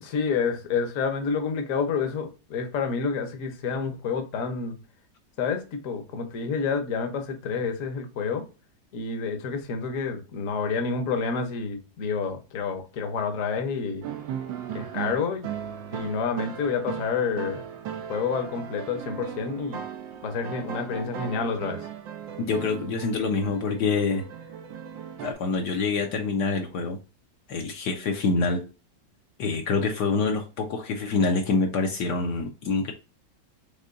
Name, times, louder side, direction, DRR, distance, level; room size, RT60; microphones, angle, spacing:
voice 1, 0.0-4.7 5.4-8.4 8.9-14.0 14.7-15.5 15.9-17.6 18.1-19.8 20.2-21.9, left 5 dB, 55° left, 1.1 m, -29 dB
sound 1, 14.0-25.3, right 9 dB, 80° right, 1.4 m, -37 dB
voice 2, 22.4-24.2 25.2-27.0 27.5-28.7 29.4-32.9, left 4 dB, 70° left, 1.2 m, -26 dB
5.5 x 3.6 x 2.5 m
omnidirectional pair, 2.0 m